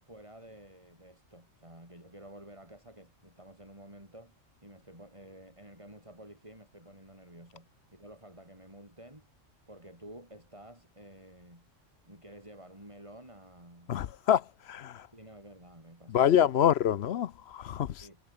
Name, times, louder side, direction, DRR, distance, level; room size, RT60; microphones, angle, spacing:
voice 1, 0.0-9.3 9.7-11.7 12.1-14.0 15.1-16.5 18.0-18.2, right 1 dB, 25° right, 7.1 m, -51 dB
voice 2, 13.9-15.1 16.1-18.0, left 10 dB, 60° left, 0.9 m, -26 dB
omnidirectional pair, 1.3 m